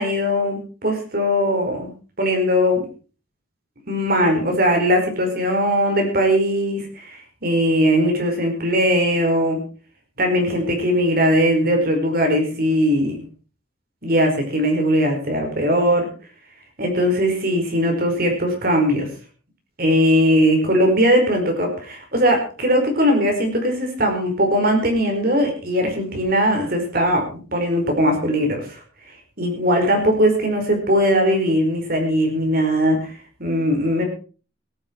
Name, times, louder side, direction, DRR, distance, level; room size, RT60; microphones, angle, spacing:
voice 1, 0.0-1.9 2.2-2.9 3.9-9.6 10.2-13.2 14.0-16.1 16.8-19.1 19.8-28.8 29.4-34.0, equal, 50° right, 3 dB, 5.0 m, -19 dB
18.5 x 12.0 x 4.7 m, 0.38 s
head